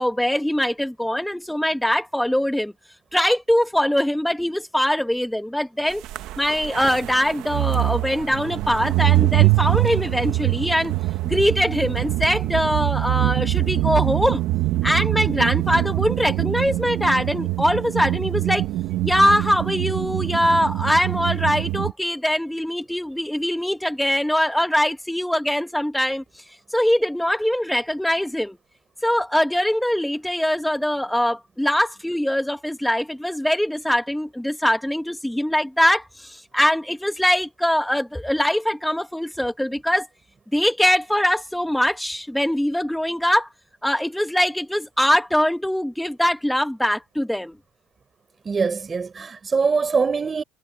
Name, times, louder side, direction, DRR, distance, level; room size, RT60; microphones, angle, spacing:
voice 1, 0.0-2.7 3.1-6.0 6.4-10.9 11.2-14.4 14.8-18.7 19.0-26.2 26.7-28.6 29.0-40.1 40.5-43.5 43.8-47.6, left 1 dB, 5° left, 1.7 m, -22 dB
sound 1, 6.0-21.9, right 17 dB, 60° right, 1.4 m, -23 dB
voice 2, 48.5-50.4, right 5 dB, 25° right, 5.6 m, -23 dB
cardioid pair, 125°, 0 cm